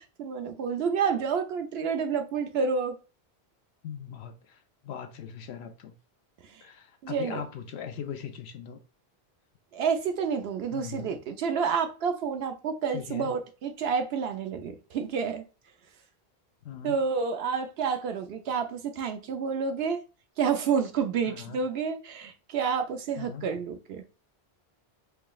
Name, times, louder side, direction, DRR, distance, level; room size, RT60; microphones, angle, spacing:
voice 1, 0.0-3.0 7.0-7.4 9.7-15.4 16.8-20.0 20.4-24.0, right 6 dB, 70° right, 0.9 m, -29 dB
voice 2, 3.8-5.9 6.6-8.8 10.7-11.2 12.9-13.3 16.6-17.0 21.3-21.6 23.2-23.5, left 8 dB, 80° left, 0.9 m, -40 dB
4.6 x 3.0 x 2.3 m
omnidirectional pair, 1.1 m